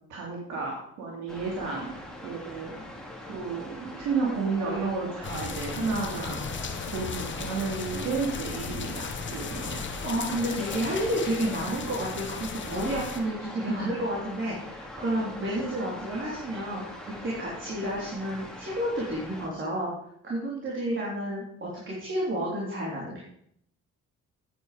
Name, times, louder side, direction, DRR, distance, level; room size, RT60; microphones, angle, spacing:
voice 1, 0.1-1.9 2.2-2.7 3.3-6.4 6.9-9.8, right 4 dB, 85° right, -3 dB, 2.6 m, -32 dB
sound 1, 1.3-19.5, left 1 dB, ahead, 2.4 m, -42 dB
sound 2, 5.2-13.2, left 5 dB, 40° left, 1.1 m, -36 dB
voice 2, 9.5-19.9 20.2-23.2, right 1 dB, 40° right, -4 dB, 3.4 m, -31 dB
9.2 x 9.0 x 5.1 m, 0.73 s
cardioid pair, 90°, 30 cm